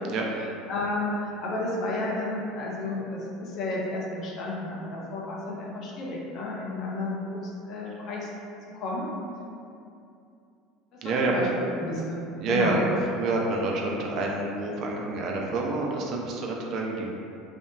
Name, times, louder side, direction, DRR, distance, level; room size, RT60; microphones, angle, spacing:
voice 1, 0.7-7.4 7.7-8.3 8.7-9.1 10.9-12.2 12.5-12.8, left 2 dB, 50° left, -4 dB, 0.5 m, -32 dB
voice 2, 11.0-11.4 12.4-12.9 13.2-17.1, right 3 dB, 50° right, -1 dB, 0.4 m, -28 dB
2.9 x 2.0 x 2.2 m, 2.6 s
hypercardioid pair, 70°, 0 cm